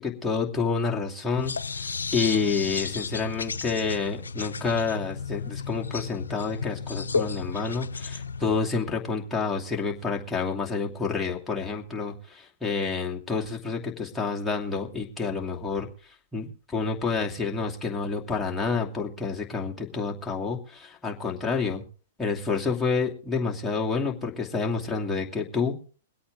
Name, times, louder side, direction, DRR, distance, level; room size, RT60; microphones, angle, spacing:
voice 1, 0.0-15.9 16.3-21.8 22.2-25.8, left 4 dB, 10° left, -2 dB, 2.7 m, -29 dB
sound 1, 1.4-8.6, left 5 dB, 85° left, 0.6 m, -33 dB
23.0 x 8.5 x 3.7 m, 0.40 s
hypercardioid pair, 110°, 0 cm